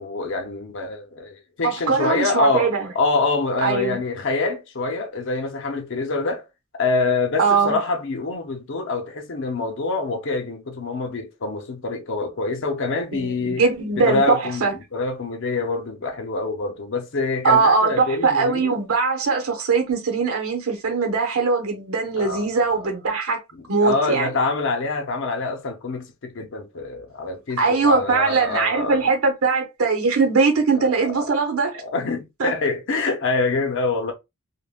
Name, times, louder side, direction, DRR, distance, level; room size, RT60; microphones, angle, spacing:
voice 1, 0.0-6.5 6.8-13.7 13.9-18.8 22.2-22.5 22.7-22.8 23.5-29.1 30.8-30.9 31.2-31.3 31.8-34.1, left 3 dB, 60° left, 0.6 m, -25 dB
voice 2, 1.6-2.9 3.6-4.0 7.4-7.8 13.1-14.7 17.4-23.4 23.7-24.3 27.6-31.8 32.4-32.5, right 4 dB, 85° right, 0.8 m, -21 dB
3.4 x 2.1 x 2.3 m
head